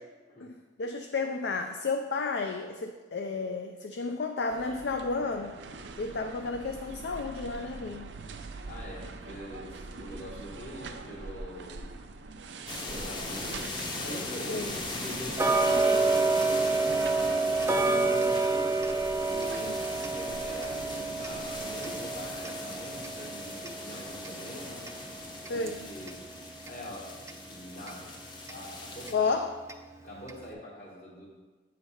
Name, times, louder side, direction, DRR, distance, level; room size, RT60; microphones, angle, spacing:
voice 1, 0.4-5.5 6.0-8.1 14.5-14.7 17.9-18.0 19.6-19.8 25.5-25.8 29.1-29.6, left 4 dB, 65° left, 5 dB, 0.4 m, -32 dB
sound 1, 4.5-21.9, right 3 dB, 80° right, 0.5 m, -45 dB
voice 2, 8.7-11.9 12.7-13.7 14.0-17.1 17.5-18.8 19.2-19.8 20.1-24.8 25.5-26.2 26.7-27.1 27.5-28.2 28.5-29.3 30.0-31.2, equal, 50° left, -7 dB, 1.1 m, -44 dB
sound 2, 12.7-29.1, left 2 dB, 25° left, 0.7 m, -39 dB
Tick-tock, 15.4-26.2 26.6-26.7 27.3-27.4 27.9-28.0 28.5-28.6 29.1-29.2 29.7-29.8 30.3-30.4, right 3 dB, 15° right, 0.3 m, -29 dB
8.0 x 3.3 x 5.5 m, 1.3 s
head